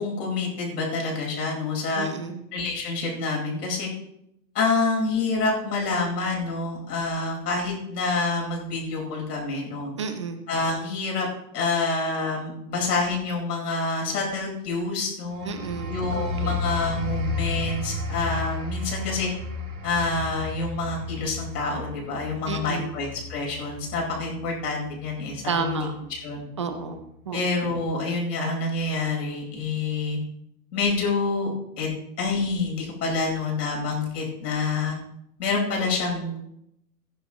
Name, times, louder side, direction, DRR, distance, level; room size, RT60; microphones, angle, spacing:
voice 1, 0.0-2.1 2.5-3.9 4.5-9.9 10.5-11.3 11.5-15.5 15.9-19.3 19.8-26.5 27.3-30.2 30.7-31.5 31.8-31.9 32.2-34.9 35.4-36.4, left 3 dB, 70° left, 0 dB, 4.6 m, -27 dB
voice 2, 2.0-2.4 10.0-10.4 15.4-16.6 22.5-22.9 25.4-25.9 26.6-27.0 27.3-27.4, right 5 dB, 20° right, 7 dB, 0.4 m, -31 dB
sound 1, 15.3-25.7 26.1-26.4, left 3 dB, 90° right, 4.2 m, -33 dB
16.5 x 10.0 x 2.9 m, 0.78 s
hypercardioid pair, 155°, 49 cm